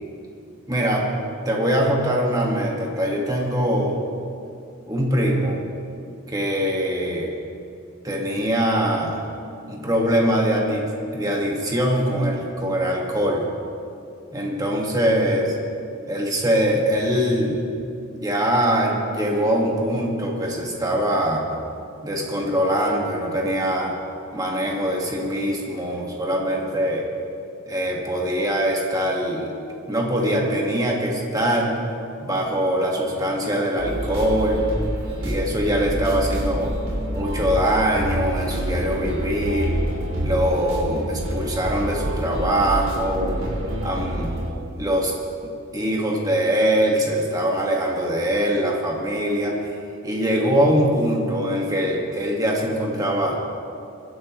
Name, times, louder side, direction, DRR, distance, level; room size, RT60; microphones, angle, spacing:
voice 1, 0.7-1.1 1.5-4.0 4.9-5.6 6.3-7.3 8.0-9.2 9.7-10.9 11.1-13.4 14.3-15.5 16.1-17.6 18.1-21.5 22.0-23.9 24.3-27.0 27.7-29.5 29.9-31.8 32.2-34.6 35.2-36.7 37.1-39.8 40.2-43.4 43.8-44.3 44.8-45.1 45.4-49.6 50.0-53.3, equal, 20° right, -1 dB, 1.8 m, -22 dB
sound 1, 33.8-44.5, right 1 dB, 80° right, 3.6 m, -27 dB
23.5 x 11.0 x 3.2 m, 2.6 s
head